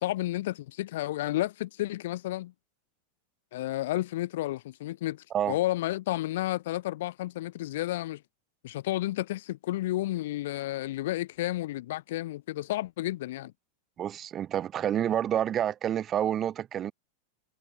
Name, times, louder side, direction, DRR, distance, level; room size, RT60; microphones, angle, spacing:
voice 1, 0.0-2.5 3.5-8.2 8.6-13.5, left 15 dB, 55° left, 1.6 m, -31 dB
voice 2, 14.0-16.9, right 10 dB, 25° right, 2.4 m, -28 dB
figure-of-eight pair, 90°, 0 cm